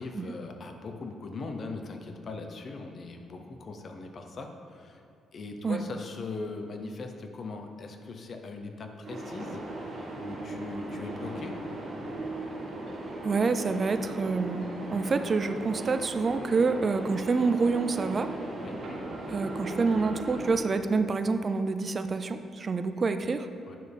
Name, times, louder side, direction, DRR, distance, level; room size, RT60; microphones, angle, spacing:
voice 1, 0.0-5.0 5.3-9.6 10.2-11.6 18.6-18.8 23.7-23.8, left 3 dB, 50° left, 4 dB, 0.8 m, -40 dB
sound 1, 9.0-20.6, right 2 dB, 60° right, 1.8 m, -38 dB
voice 2, 13.2-18.3 19.3-23.5, right 4 dB, 40° right, 10 dB, 0.4 m, -27 dB
9.1 x 6.5 x 3.5 m, 2.6 s
cardioid pair, 90°, 0 cm